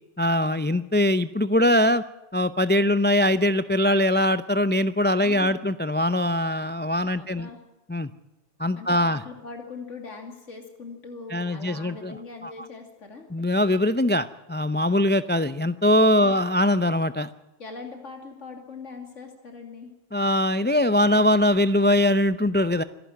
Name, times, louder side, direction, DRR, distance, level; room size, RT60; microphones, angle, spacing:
voice 1, 0.2-2.0 2.3-7.5 7.9-8.1 8.6-9.2 11.3-12.2 12.4-12.5 13.3-17.3 20.1-22.8, left 1 dB, 15° left, 13 dB, 0.4 m, -22 dB
voice 2, 5.1-5.7 7.1-7.6 8.8-13.3 15.9-16.4 17.6-19.9, left 4 dB, 75° left, 5 dB, 3.1 m, -41 dB
26.5 x 11.5 x 9.3 m, 1.0 s
omnidirectional pair, 1.3 m